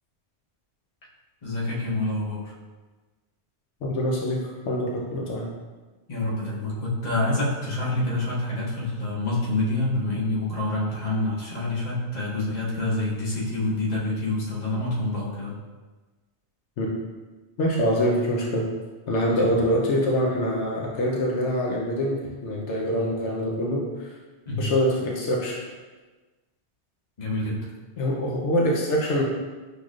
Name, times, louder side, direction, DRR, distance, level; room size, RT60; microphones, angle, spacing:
voice 1, 1.4-2.5 6.1-15.6 19.3-19.5 24.4-24.7 27.2-27.7, left 2 dB, 40° left, -6 dB, 1.1 m, -27 dB
voice 2, 3.8-4.4 4.7-5.5 16.8-16.9 17.6-18.7 19.1-23.9 24.6-25.6 28.0-29.2, equal, 80° left, -2 dB, 1.0 m, -24 dB
6.1 x 3.4 x 2.4 m, 1.3 s
omnidirectional pair, 1.2 m